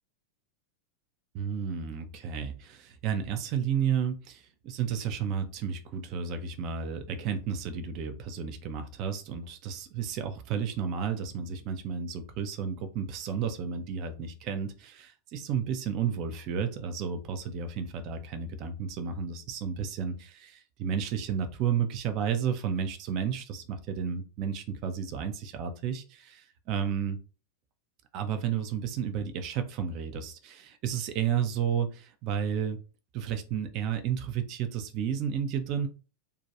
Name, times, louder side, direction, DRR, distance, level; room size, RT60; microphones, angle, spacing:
voice 1, 1.3-27.2 28.1-32.8 33.1-35.9, right 7 dB, 40° right, 8 dB, 0.4 m, -32 dB
2.2 x 2.2 x 2.8 m, 0.34 s
figure-of-eight pair, 90°, 0 cm